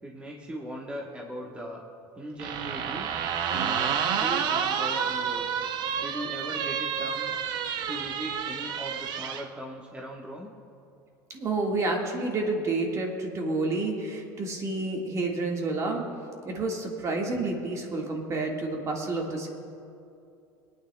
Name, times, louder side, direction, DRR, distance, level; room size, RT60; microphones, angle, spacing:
voice 1, 0.0-1.8 2.2-3.1 3.5-5.5 6.0-7.4 7.9-10.5, right 1 dB, 15° right, -3 dB, 1.2 m, -39 dB
sound 1, 2.4-9.5, right 7 dB, 55° right, 0.7 m, -29 dB
voice 2, 11.3-16.1 16.4-19.5, right 2 dB, 35° right, 0 dB, 1.7 m, -29 dB
25.5 x 9.2 x 2.3 m, 2.5 s
supercardioid pair, 95°, 9 cm